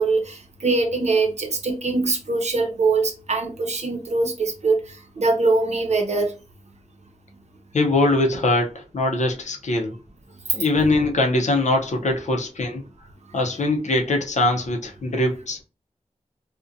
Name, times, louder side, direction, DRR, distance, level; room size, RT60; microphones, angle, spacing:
voice 1, 0.0-6.3, right 3 dB, 60° right, 0.7 m, -22 dB
voice 2, 7.7-9.9 10.5-12.8 13.3-15.6, left 2 dB, 70° left, 0.5 m, -22 dB
2.5 x 2.1 x 2.4 m
wide cardioid pair, 80°, 13 cm